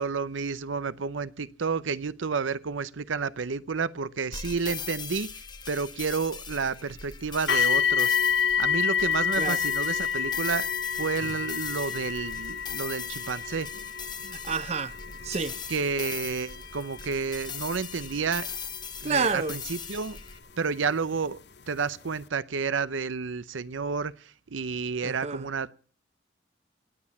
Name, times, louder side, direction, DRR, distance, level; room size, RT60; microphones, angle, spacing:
voice 1, 0.0-10.7 11.0-13.7 15.7-18.5 19.0-20.2 20.6-21.4 21.7-25.7, right 5 dB, 85° right, 0.7 m, -30 dB
sound 1, 4.3-20.4, left 6 dB, 25° left, 1.1 m, -40 dB
sound 2, 7.5-20.4 21.2-21.3 21.9-22.0, left 7 dB, 60° left, 0.7 m, -29 dB
voice 2, 14.2-14.9 15.2-15.6 19.0-19.6 25.0-25.5, right 4 dB, 35° right, 0.6 m, -29 dB
19.0 x 8.6 x 7.0 m
head